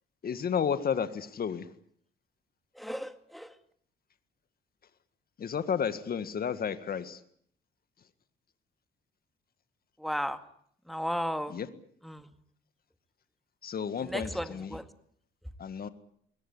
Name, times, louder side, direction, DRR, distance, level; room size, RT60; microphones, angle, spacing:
voice 1, 0.2-1.6 5.4-7.2 11.5-11.7 13.6-14.8 15.6-15.9, left 7 dB, 50° left, 11 dB, 1.8 m, -32 dB
voice 2, 2.8-3.5 10.0-10.4 10.9-11.5 12.1-12.3 14.0-14.8, equal, ahead, 9 dB, 2.1 m, -34 dB
22.0 x 18.5 x 9.8 m, 0.65 s
cardioid pair, 90°, 20 cm